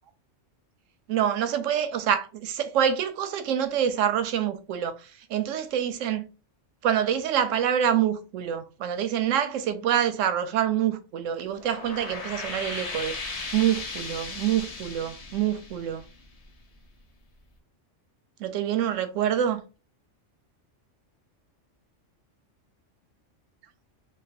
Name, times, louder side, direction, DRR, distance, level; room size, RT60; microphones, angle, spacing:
voice 1, 1.1-6.3 6.8-16.0 18.4-19.6, right 9 dB, 85° right, 1.0 m, -26 dB
sound 1, 11.5-16.7, left 3 dB, 45° left, 0.5 m, -37 dB
3.2 x 2.2 x 4.1 m
omnidirectional pair, 1.3 m